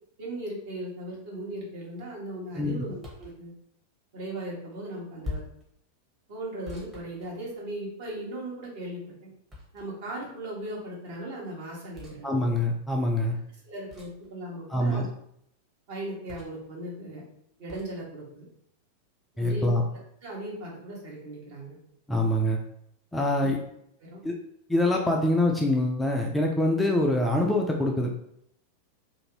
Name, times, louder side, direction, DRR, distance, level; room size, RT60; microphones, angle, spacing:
voice 1, 0.2-3.5 4.1-5.4 6.3-9.3 9.7-12.6 13.5-15.0 15.9-17.2 17.6-18.5 19.3-19.7 20.2-21.8 23.4-23.5 24.0-24.2, right 1 dB, 50° right, -4 dB, 1.1 m, -38 dB
sound 1, 3.0-3.4 5.2-5.7 6.7-7.8 9.5-10.1 11.9-12.2 13.9-14.3 16.3-16.7 17.7-17.9, left 3 dB, 15° right, 0.9 m, -41 dB
voice 2, 12.2-13.4 14.7-15.0 19.4-19.8 22.1-22.6 23.1-23.6 24.2-24.3 24.7-28.2, left 1 dB, 10° left, 0 dB, 0.4 m, -25 dB
2.6 x 2.5 x 3.0 m, 0.72 s
figure-of-eight pair, 90°, 0 cm